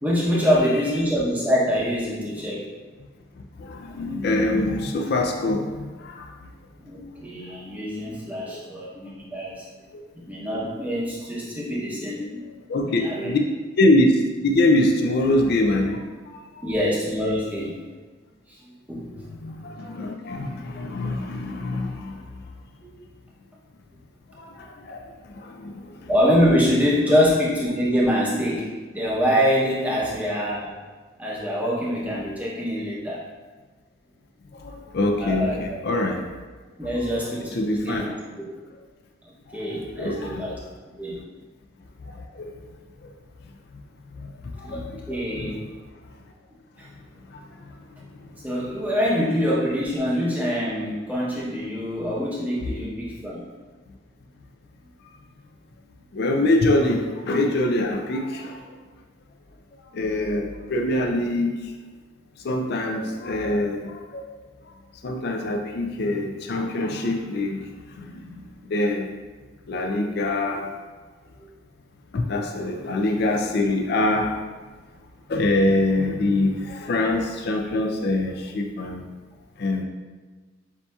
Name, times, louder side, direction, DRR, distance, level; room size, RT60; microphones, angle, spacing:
voice 1, 0.0-2.6 6.8-9.6 10.3-12.2 12.8-13.3 16.6-17.8 18.6-19.0 22.8-23.0 26.1-28.7 28.9-30.7 31.2-33.2 35.2-35.5 36.8-38.2 39.2-40.6 41.0-41.2 44.6-44.8 45.1-45.5 46.8-46.9 48.4-53.4, equal, 10° right, -6 dB, 0.7 m, -24 dB
voice 2, 3.6-6.4 8.5-8.6 12.7-13.4 13.8-16.0 16.5-16.6 19.2-22.2 24.4-26.1 27.1-27.2 34.5-36.2 36.8-37.0 37.5-38.1 39.5-39.6 40.0-40.5 42.0-42.6 44.2-45.5 47.3-47.7 56.1-58.7 59.9-61.6 62.4-64.3 65.0-67.7 68.0-69.1 69.7-70.7 72.1-74.4 75.3-79.1 79.6-79.8, left 1 dB, 50° left, 3 dB, 0.4 m, -24 dB
7.0 x 2.7 x 2.3 m, 1.4 s
head